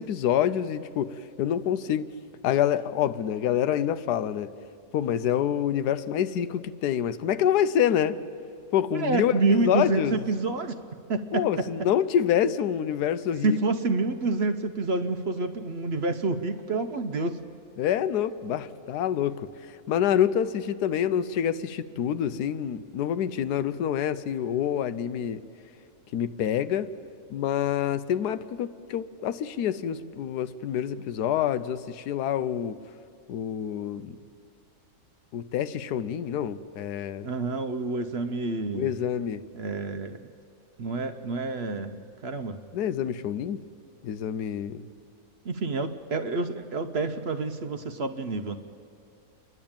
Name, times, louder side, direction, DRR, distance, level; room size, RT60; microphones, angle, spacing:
voice 1, 0.0-2.1 2.4-4.5 4.9-8.2 8.7-10.2 11.3-13.6 17.8-25.4 26.1-26.9 27.3-32.8 33.3-34.2 35.3-37.3 38.7-39.4 42.7-43.6 44.0-44.9, left 9 dB, 90° left, 1.2 m, -27 dB
voice 2, 8.9-10.8 11.1-11.4 13.4-17.4 37.2-38.9 39.5-40.2 40.8-42.6 45.4-48.6, right 3 dB, 50° right, 0.8 m, -28 dB
28.5 x 11.0 x 8.8 m
omnidirectional pair, 1.7 m